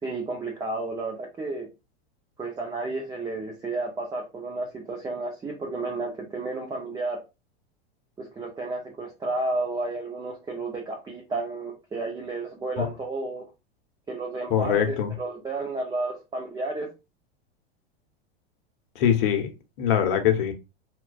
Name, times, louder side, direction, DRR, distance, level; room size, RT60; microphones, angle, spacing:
voice 1, 0.0-1.7 2.4-7.2 8.2-13.4 14.1-16.9, right 2 dB, 10° right, 0.5 m, -32 dB
voice 2, 14.5-15.1 19.0-19.5 19.8-20.5, left 9 dB, 60° left, 0.8 m, -23 dB
2.4 x 2.2 x 2.3 m
hypercardioid pair, 115°, 31 cm